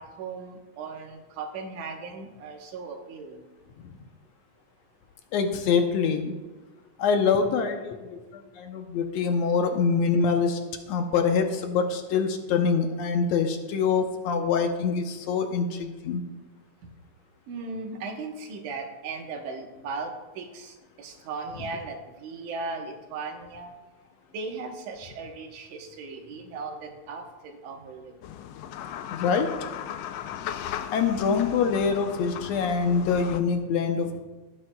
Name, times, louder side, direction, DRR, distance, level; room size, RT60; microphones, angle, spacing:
voice 1, 0.0-3.5 17.5-23.7 24.3-28.1 34.1-34.2, right 4 dB, 85° right, 3 dB, 2.6 m, -37 dB
voice 2, 5.3-6.4 7.0-10.6 10.9-16.2 29.1-29.5 30.9-34.2, left 5 dB, 75° left, 5 dB, 1.8 m, -25 dB
sound 1, 28.2-33.4, left 10 dB, 90° left, 1.4 m, -37 dB
17.0 x 8.5 x 2.2 m, 1.2 s
omnidirectional pair, 3.4 m